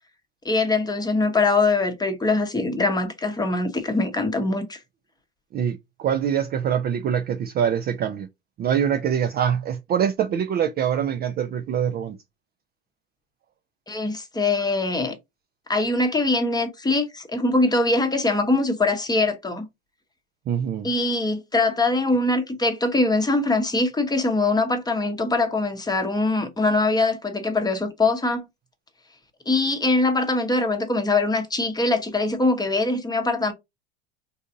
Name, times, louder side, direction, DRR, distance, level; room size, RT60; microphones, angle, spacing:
voice 1, 0.4-4.8 13.9-15.1 15.7-19.6 20.8-28.4 29.5-33.5, left 2 dB, 10° left, 0.9 m, -22 dB
voice 2, 5.5-8.3 8.6-12.2 20.5-20.9, right 8 dB, 30° right, 0.4 m, -24 dB
4.0 x 2.5 x 2.6 m
hypercardioid pair, 85°, 33 cm